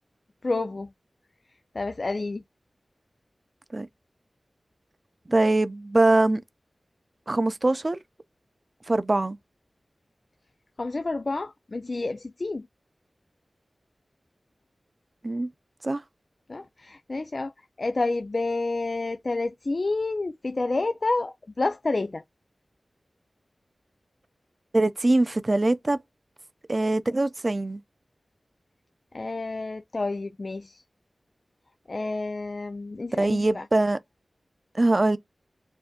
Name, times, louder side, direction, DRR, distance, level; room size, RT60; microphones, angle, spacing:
voice 1, 0.4-0.9 1.7-2.4 10.8-12.7 16.5-17.5 17.8-22.2 29.1-30.8 31.9-33.6, left 3 dB, 50° left, 0.3 m, -29 dB
voice 2, 5.3-6.4 7.3-8.0 8.9-9.4 15.2-15.5 15.8-16.0 24.7-26.0 26.7-27.8 33.2-34.0 34.7-35.2, right 2 dB, 40° right, 0.5 m, -22 dB
7.1 x 2.6 x 2.2 m
wide cardioid pair, 70°, 0 cm